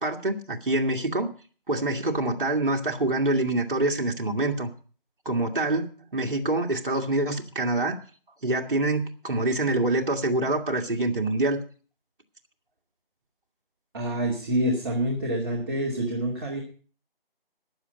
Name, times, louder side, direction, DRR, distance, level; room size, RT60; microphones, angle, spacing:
voice 1, 0.0-1.3 1.7-4.7 5.3-5.9 6.1-8.0 8.4-11.6, right 2 dB, 60° right, 2.0 m, -25 dB
voice 2, 13.9-16.6, right 1 dB, 25° right, 2.4 m, -27 dB
14.0 x 10.0 x 5.2 m
figure-of-eight pair, 160°, 29 cm